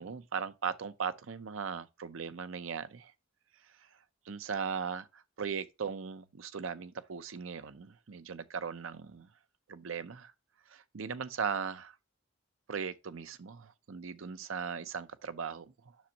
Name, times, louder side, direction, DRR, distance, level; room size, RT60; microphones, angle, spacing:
voice 1, 0.0-3.1 3.6-9.3 9.7-10.3 10.7-12.0 12.7-16.0, right 6 dB, 80° right, 0.6 m, -38 dB
7.3 x 6.1 x 2.8 m
head